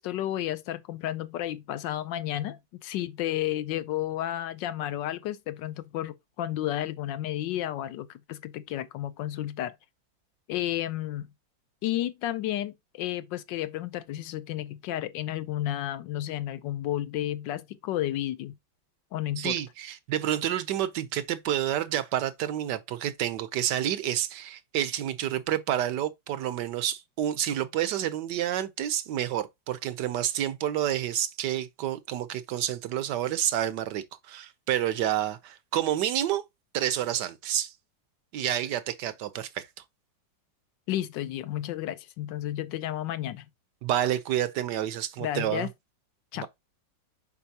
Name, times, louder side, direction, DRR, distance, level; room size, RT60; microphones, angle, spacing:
voice 1, 0.0-9.8 10.5-11.3 11.8-18.5 19.1-19.6 40.9-43.4 45.2-45.7 46.3-46.5, left 13 dB, 80° left, 1.3 m, -32 dB
voice 2, 19.4-36.5 36.7-37.7 38.3-39.7 43.8-45.7 46.4-46.5, right 11 dB, 70° right, 1.2 m, -29 dB
6.9 x 5.2 x 2.8 m
omnidirectional pair, 2.0 m